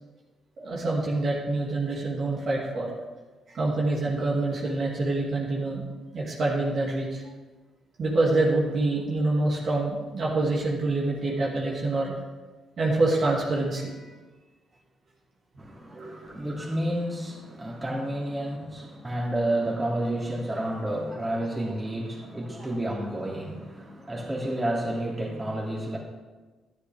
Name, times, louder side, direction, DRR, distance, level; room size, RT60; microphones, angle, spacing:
voice 1, 0.6-2.9 3.5-5.9 6.1-7.2 8.0-12.1 12.8-14.1 15.9-16.3, right 2 dB, 50° right, -4 dB, 2.4 m, -26 dB
voice 2, 15.6-26.0, right 1 dB, 20° right, -4 dB, 3.0 m, -30 dB
12.5 x 10.0 x 3.6 m, 1.3 s
cardioid pair, 90°, 0 cm